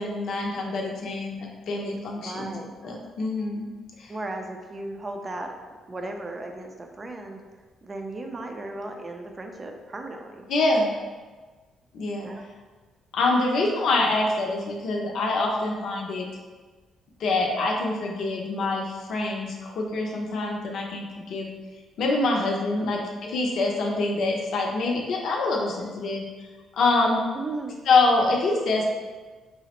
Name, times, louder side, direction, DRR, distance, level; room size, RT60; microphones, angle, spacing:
voice 1, 0.0-3.7 4.0-4.1 10.5-10.9 11.9-12.3 13.1-16.3 17.2-21.5 22.0-26.2 26.7-27.2 27.9-28.9, left 2 dB, 70° left, 0 dB, 0.6 m, -25 dB
voice 2, 2.1-2.7 4.1-5.6 5.9-7.4 7.8-10.5 12.2-12.5 22.7-23.1 27.3-27.8, right 2 dB, 30° right, 3 dB, 0.4 m, -36 dB
4.8 x 2.0 x 2.9 m, 1.4 s
cardioid pair, 90°, 0 cm